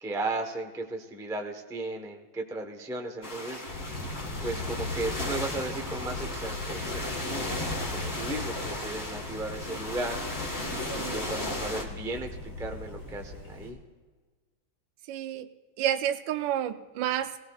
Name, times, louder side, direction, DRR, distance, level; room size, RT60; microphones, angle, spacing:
voice 1, 0.0-3.6 4.4-7.0 7.3-7.5 7.9-10.2 10.9-13.8, right 2 dB, 5° right, 3 dB, 0.4 m, -35 dB
sound 1, 3.2-11.8, left 2 dB, 35° left, 1.7 m, -35 dB
Thunder, 3.7-13.7, left 2 dB, 90° left, 4.4 m, -39 dB
voice 2, 15.1-15.5 15.8-17.3, right 11 dB, 75° right, 8 dB, 1.2 m, -30 dB
18.5 x 17.5 x 2.4 m, 1.4 s
omnidirectional pair, 2.2 m